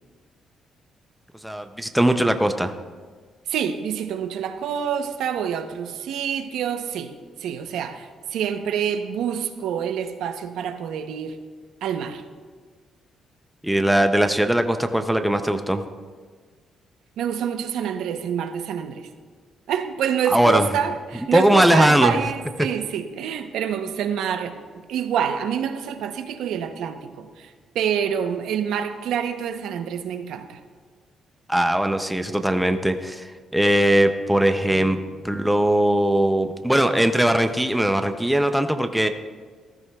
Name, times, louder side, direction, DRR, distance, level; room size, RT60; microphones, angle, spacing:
voice 1, 1.4-2.7 13.6-15.8 20.3-20.7 21.3-22.1 31.5-35.0 35.2-39.1, right 1 dB, ahead, 7 dB, 0.4 m, -20 dB
voice 2, 3.5-7.1 7.4-11.4 11.8-12.2 17.2-19.1 19.7-24.6 24.9-30.6 34.6-34.9, right 8 dB, 90° right, 8 dB, 0.7 m, -27 dB
15.0 x 14.0 x 2.3 m, 1.6 s
cardioid pair, 175°, 0 cm